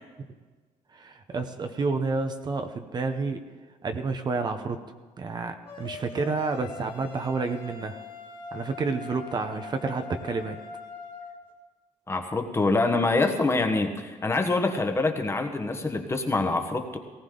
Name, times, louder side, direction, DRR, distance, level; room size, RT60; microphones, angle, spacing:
voice 1, 0.9-3.4 3.8-4.8 5.2-8.0 8.5-10.6, right 4 dB, 35° right, 7 dB, 0.9 m, -30 dB
sound 1, 5.7-11.4, left 4 dB, 45° left, 2.2 m, -42 dB
voice 2, 12.1-17.0, left 3 dB, 20° left, 5 dB, 1.3 m, -25 dB
18.5 x 16.5 x 3.9 m, 1.4 s
cardioid pair, 135°, 13 cm